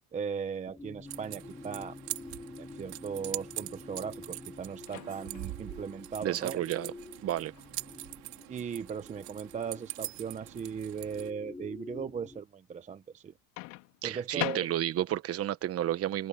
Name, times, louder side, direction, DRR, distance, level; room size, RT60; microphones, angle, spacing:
voice 1, 0.1-2.0 2.6-6.6 8.5-13.3 14.0-14.7, right 6 dB, 15° right, 0.7 m, -38 dB
sound 1, 0.7-12.4, left 3 dB, 10° left, 3.7 m, -48 dB
sound 2, 1.1-11.3, right 20 dB, 60° right, 3.8 m, -43 dB
Microwave oven, 4.9-5.5 7.5-7.8 13.6-15.2, left 22 dB, 80° left, 2.6 m, -40 dB
voice 2, 6.2-6.9 7.2-7.5 14.0-16.3, right 12 dB, 35° right, 1.2 m, -31 dB
open air
cardioid pair, 155°, 41 cm